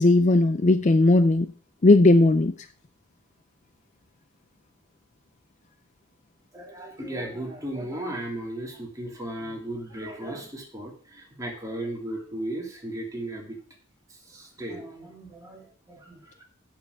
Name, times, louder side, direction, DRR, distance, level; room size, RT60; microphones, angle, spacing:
voice 1, 0.0-1.5 1.8-2.5, left 2 dB, 35° left, 11 dB, 0.5 m, -17 dB
voice 2, 6.5-13.6 14.3-16.4, right 1 dB, 15° right, -1 dB, 2.9 m, -36 dB
8.0 x 7.2 x 7.1 m, 0.43 s
head